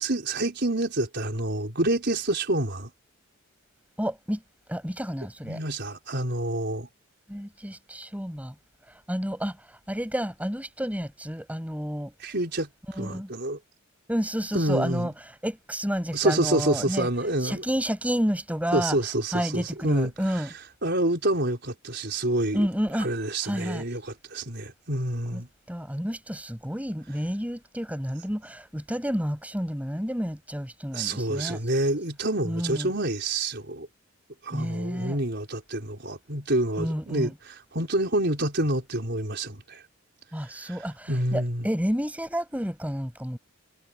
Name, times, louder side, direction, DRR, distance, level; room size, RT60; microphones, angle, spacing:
voice 1, 0.0-2.9 5.4-6.9 12.2-12.7 13.0-13.6 14.5-15.1 16.1-17.6 18.7-20.5 20.8-22.7 23.0-25.5 30.9-33.9 34.4-39.8 40.4-40.8 41.1-41.7, right 1 dB, 50° right, 4.9 m, -27 dB
voice 2, 4.0-4.4 4.7-5.6 7.3-8.5 9.1-12.1 12.9-13.3 14.1-17.1 17.4-19.0 19.3-20.5 22.5-23.1 23.4-23.8 25.3-25.4 25.7-31.6 32.4-32.9 34.5-35.2 36.8-37.3 40.3-43.4, equal, 5° right, 6.3 m, -30 dB
head